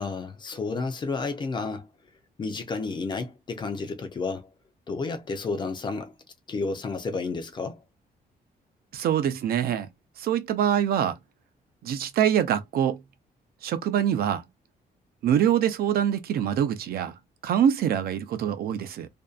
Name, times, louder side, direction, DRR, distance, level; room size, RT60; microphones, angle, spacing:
voice 1, 0.0-1.9 2.4-4.5 4.9-6.1 6.5-7.8, left 4 dB, 30° left, 0.4 m, -31 dB
voice 2, 8.9-9.9 10.2-11.1 11.8-13.0 13.6-14.4 15.2-17.1 17.4-19.1, right 9 dB, 65° right, 0.5 m, -24 dB
2.6 x 2.1 x 2.4 m
cardioid pair, 175°, 17 cm